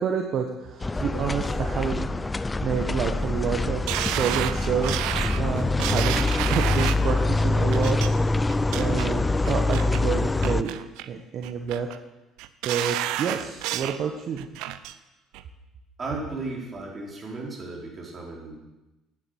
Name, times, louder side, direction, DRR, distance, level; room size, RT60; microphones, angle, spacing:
voice 1, 0.0-10.8 11.1-11.9 12.6-14.5, right 6 dB, 55° right, 3 dB, 1.2 m, -29 dB
sound 1, 0.8-10.6, left 2 dB, 20° left, 0.5 m, -25 dB
sound 2, 3.9-7.1 7.7-8.1 8.5-9.1 9.5-10.0 10.4-11.1 11.4-12.0 12.4-14.0 14.4-14.9 15.3-15.4, right 13 dB, 80° right, 0.6 m, -30 dB
voice 2, 16.0-18.6, right 3 dB, 35° right, -2 dB, 4.4 m, -35 dB
9.8 x 9.7 x 6.5 m, 1.0 s
supercardioid pair, 85°, 0 cm